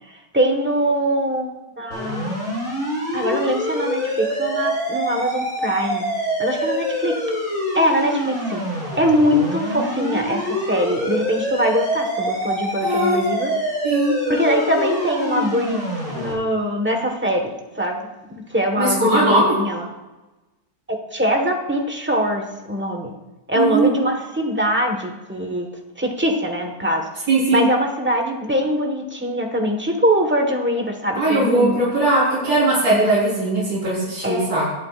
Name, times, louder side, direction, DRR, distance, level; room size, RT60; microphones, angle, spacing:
voice 1, 0.1-2.6 3.1-6.0 6.4-7.2 7.7-8.6 9.0-13.5 14.3-15.8 16.1-17.5 17.8-19.8 20.9-23.1 23.5-27.1 27.5-31.8 34.2-34.5, equal, 10° right, 2 dB, 1.1 m, -22 dB
sound 1, 1.9-16.3, equal, 55° left, 4.9 m, -25 dB
voice 2, 12.8-13.2 13.8-14.1 18.7-19.5 23.5-23.9 27.3-27.7 31.1-34.7, right 2 dB, 90° right, -11 dB, 4.5 m, -19 dB
20.0 x 8.7 x 2.5 m, 1.1 s
omnidirectional pair, 1.8 m